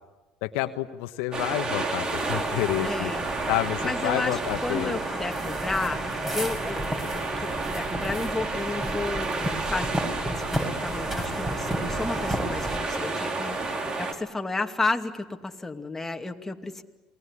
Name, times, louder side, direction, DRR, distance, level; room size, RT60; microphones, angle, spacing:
voice 1, 0.4-3.1 3.5-5.0, left 15 dB, 80° left, 8 dB, 1.2 m, -29 dB
sound 1, 1.3-14.1, right 3 dB, 35° right, 4.1 m, -31 dB
sound 2, 2.1-12.8, equal, 15° right, 7.5 m, -34 dB
voice 2, 2.8-3.3 3.8-6.0 6.3-16.8, left 3 dB, 15° left, 4 dB, 2.4 m, -32 dB
28.5 x 20.5 x 9.9 m, 1.2 s
supercardioid pair, 80°, 2 cm